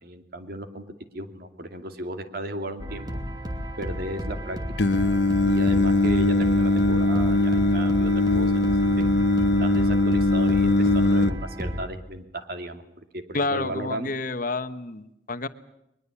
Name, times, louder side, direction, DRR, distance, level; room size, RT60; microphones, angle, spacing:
voice 1, 0.0-0.8 1.1-3.1 3.8-4.6 5.5-8.6 9.6-14.1, right 1 dB, 60° right, 7 dB, 2.4 m, -35 dB
sound 1, 2.8-11.9, equal, 25° right, 2.7 m, -33 dB
Singing, 4.8-11.3, left 2 dB, 75° left, 1.0 m, -21 dB
voice 2, 13.3-15.5, left 3 dB, 50° left, 11 dB, 1.2 m, -29 dB
22.5 x 21.5 x 8.4 m, 0.82 s
head